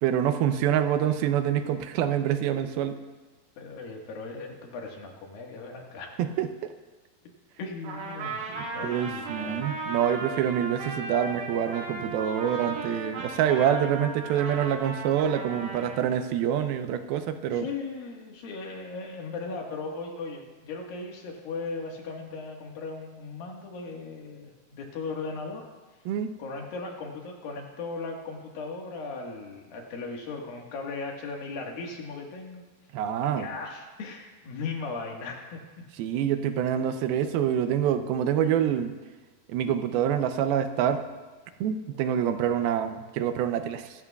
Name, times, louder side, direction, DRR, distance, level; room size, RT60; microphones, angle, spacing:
voice 1, 0.0-3.0 6.2-6.7 8.5-17.7 26.1-26.3 32.9-33.5 36.0-38.9 39.5-41.1 41.6-44.0, right 9 dB, 80° right, 9 dB, 2.6 m, -26 dB
voice 2, 3.6-6.1 7.6-9.7 17.5-25.6 26.4-32.6 33.2-35.6, left 4 dB, 70° left, 0 dB, 3.3 m, -37 dB
Trumpet, 7.8-16.0, right 3 dB, 60° right, 3.2 m, -36 dB
25.0 x 13.5 x 2.3 m, 1.3 s
omnidirectional pair, 4.4 m